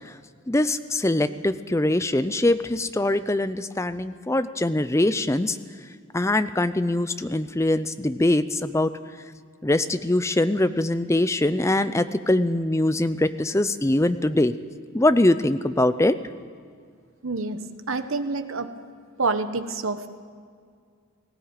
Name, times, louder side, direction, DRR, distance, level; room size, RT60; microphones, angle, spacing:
voice 1, 0.5-5.6 6.1-8.9 9.6-14.5 14.9-16.2, left 1 dB, 15° left, 12 dB, 0.5 m, -22 dB
voice 2, 17.2-17.6 17.9-18.7 19.2-20.1, right 3 dB, 65° right, 9 dB, 1.2 m, -27 dB
18.5 x 16.0 x 8.9 m, 2.1 s
head